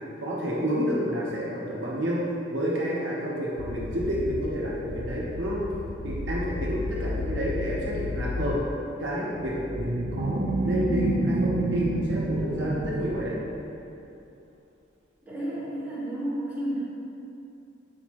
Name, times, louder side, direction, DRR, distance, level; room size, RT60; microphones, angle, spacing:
voice 1, 0.2-2.2 2.5-5.6 6.0-8.6 9.0-13.4, equal, 70° right, -5 dB, 1.0 m, -29 dB
sound 1, 3.6-8.6, left 2 dB, 85° left, 0.4 m, -34 dB
sound 2, 9.3-13.7, right 2 dB, 90° right, 0.6 m, -28 dB
voice 2, 15.2-16.9, right 1 dB, 10° right, -11 dB, 1.5 m, -31 dB
6.4 x 4.8 x 3.0 m, 2.7 s
head